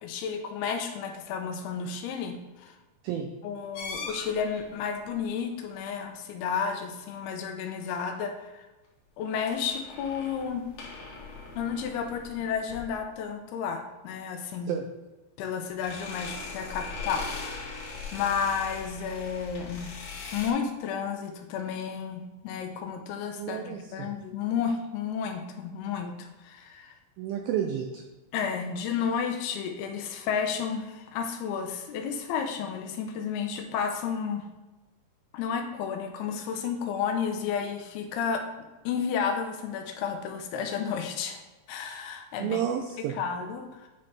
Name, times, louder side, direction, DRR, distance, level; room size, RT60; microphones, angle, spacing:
voice 1, 0.0-2.8 3.4-8.6 9.2-10.6 11.6-14.7 15.4-19.9 20.3-27.0 28.3-34.5 35.3-38.4 38.9-41.4 41.7-42.6 43.0-43.9, left 6 dB, 80° left, 5 dB, 2.5 m, -32 dB
sound 1, 3.7-4.7 9.3-13.1 15.7-20.5, left 4 dB, 65° left, 2.1 m, -40 dB
voice 2, 23.4-24.1 27.2-28.0 42.4-43.2, right 9 dB, 90° right, 4 dB, 2.0 m, -31 dB
9.6 x 4.1 x 3.3 m, 1.1 s
omnidirectional pair, 4.7 m